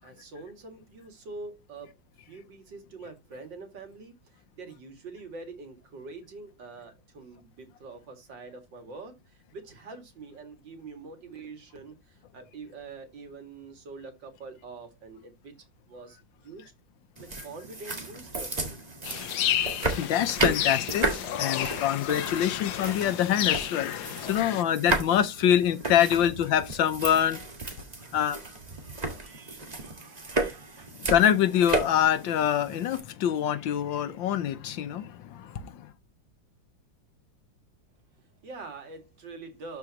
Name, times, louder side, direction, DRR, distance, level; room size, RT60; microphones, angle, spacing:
voice 1, 0.0-1.9 2.2-15.5 15.9-16.7 17.2-18.8 24.3-24.9 28.0-31.0 38.2-39.8, right 3 dB, 75° right, 2.7 m, -45 dB
sound 1, 17.2-33.0, right 2 dB, 25° right, 1.6 m, -34 dB
sound 2, 19.0-24.6, left 11 dB, 70° left, 1.2 m, -31 dB
voice 2, 20.0-21.1 21.4-23.9 24.2-27.4 28.1-28.4 31.0-35.9, left 10 dB, 85° left, 1.6 m, -25 dB
12.5 x 4.8 x 2.9 m
omnidirectional pair, 2.0 m